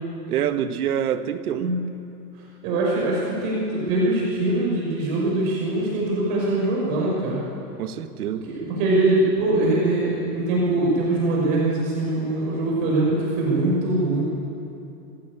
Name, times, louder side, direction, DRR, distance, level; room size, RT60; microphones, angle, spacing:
voice 1, 0.3-1.7 7.8-8.5, right 9 dB, 65° right, 9 dB, 1.8 m, -26 dB
voice 2, 2.6-7.4 8.4-14.2, right 2 dB, 30° right, -4 dB, 6.0 m, -22 dB
28.5 x 16.5 x 8.6 m, 2.8 s
supercardioid pair, 170°, 48 cm